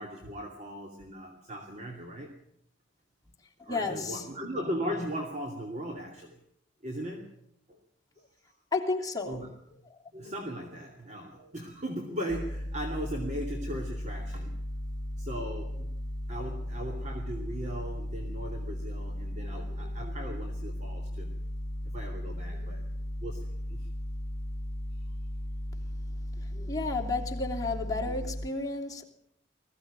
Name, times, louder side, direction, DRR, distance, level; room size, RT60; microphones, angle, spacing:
voice 1, 0.0-2.3 3.6-6.4 6.8-7.3 7.7-7.8 9.3-9.5 10.1-14.5 15.2-15.9 16.3-21.3 21.8-22.8 23.2-23.9 26.5-26.9 28.1-28.2, equal, 40° right, 2.7 m, -38 dB
voice 2, 3.7-4.2 8.7-9.4 26.7-29.0, left 3 dB, 20° left, 3.0 m, -32 dB
sound 1, 12.3-28.5, left 1 dB, 55° left, 2.2 m, -36 dB
20.5 x 15.5 x 8.8 m
head